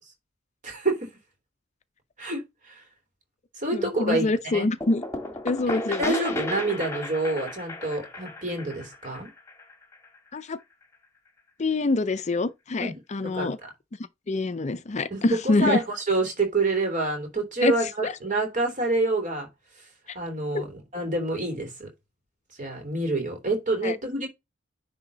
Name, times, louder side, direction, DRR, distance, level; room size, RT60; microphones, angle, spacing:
voice 1, 0.6-1.1 2.2-2.4 2.7-2.8 3.6-4.3 4.5-4.7 6.0-9.3 12.8-12.9 13.3-13.5 15.1-19.5 20.1-21.9 22.6-24.3, right 2 dB, 45° right, 3.1 m, -27 dB
voice 2, 3.7-5.0 5.4-6.2 10.3-10.6 11.6-13.6 14.3-15.8 17.6-17.7 18.0-18.1 20.5-20.6 23.8-24.0, left 3 dB, 40° left, 0.5 m, -25 dB
sound 1, 4.8-10.4, left 2 dB, 15° left, 1.6 m, -34 dB
10.0 x 3.5 x 4.0 m
head